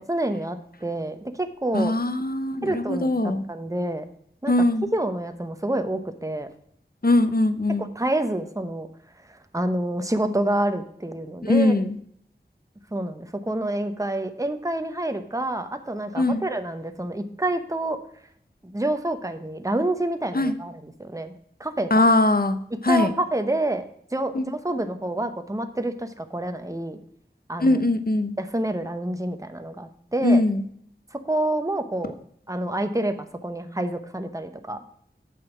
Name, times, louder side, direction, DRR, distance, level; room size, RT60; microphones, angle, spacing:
voice 1, 0.0-1.9 2.6-4.1 4.4-4.5 4.9-6.5 7.7-8.9 9.3-11.7 12.9-18.0 18.6-21.3 21.6-22.0 22.7-27.0 27.5-27.8 28.4-30.4 31.1-32.1 32.5-34.8, right 1 dB, 15° right, 8 dB, 0.9 m, -28 dB
voice 2, 1.7-3.4 4.5-4.9 7.0-7.9 11.4-12.0 16.2-16.4 20.3-20.5 21.9-23.1 24.3-24.5 27.6-28.3 30.2-30.6, left 2 dB, 50° left, 10 dB, 0.9 m, -21 dB
8.3 x 6.3 x 5.9 m, 0.67 s
wide cardioid pair, 40°, 19 cm